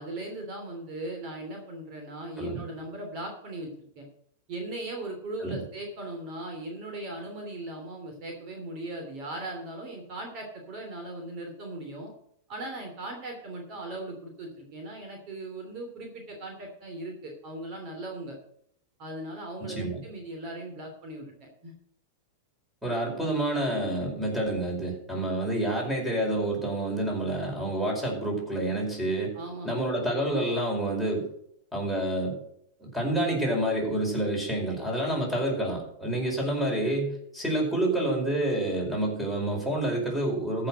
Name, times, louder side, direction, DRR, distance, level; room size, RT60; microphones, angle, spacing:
voice 1, 0.0-4.1 4.5-12.1 12.5-18.4 19.0-21.7 29.3-29.9 35.1-35.2, right 2 dB, 45° right, 2 dB, 3.1 m, -38 dB
voice 2, 19.6-20.0 22.8-29.4 29.6-31.3 31.7-32.4 32.8-40.7, right 1 dB, 5° right, -1 dB, 4.8 m, -28 dB
14.0 x 5.8 x 6.3 m, 0.69 s
hypercardioid pair, 130°, 0 cm